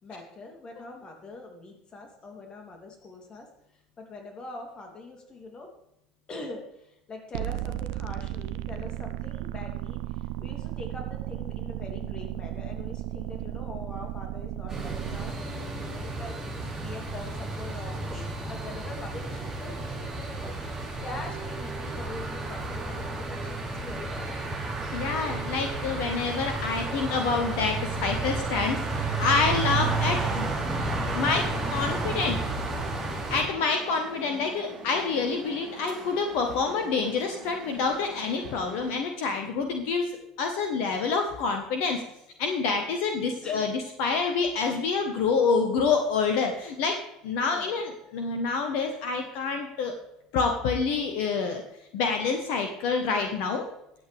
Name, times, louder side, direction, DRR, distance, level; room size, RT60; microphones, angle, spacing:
voice 1, 0.0-3.5 4.0-5.7 6.3-24.6 43.4-43.7 47.5-47.8, left 2 dB, 30° left, 2 dB, 3.1 m, -43 dB
sound 1, 7.3-15.3, right 14 dB, 60° right, 0.6 m, -34 dB
sound 2, 14.7-33.4, right 3 dB, 20° right, 4.5 m, -32 dB
voice 2, 24.9-30.5 31.1-32.4 33.3-42.0 42.4-47.0 47.2-49.9 50.3-51.6 51.9-53.6, left 4 dB, 55° left, 5 dB, 1.3 m, -27 dB
sound 3, 31.4-38.9, right 2 dB, 45° right, 4.4 m, -44 dB
22.0 x 8.2 x 3.5 m, 0.81 s
figure-of-eight pair, 70°, 3 cm